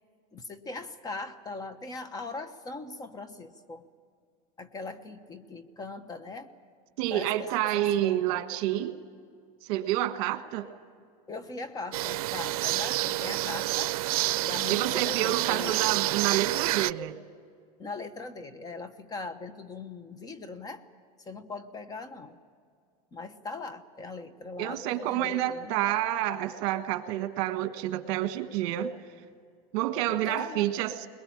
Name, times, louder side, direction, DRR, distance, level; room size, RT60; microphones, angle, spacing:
voice 1, 0.3-3.8 4.6-6.5 7.0-7.5 7.7-8.4 11.3-13.9 14.4-15.8 17.8-20.8 21.2-22.4 23.1-25.7 30.2-30.7, left 3 dB, 20° left, 11 dB, 1.1 m, -40 dB
voice 2, 7.0-9.0 9.6-10.7 14.7-17.2 24.6-28.9 29.7-31.1, right 13 dB, 60° right, 9 dB, 1.5 m, -29 dB
sound 1, 11.9-16.9, right 17 dB, 80° right, 0.5 m, -28 dB
21.5 x 21.0 x 8.7 m, 2.2 s
supercardioid pair, 140°, 19 cm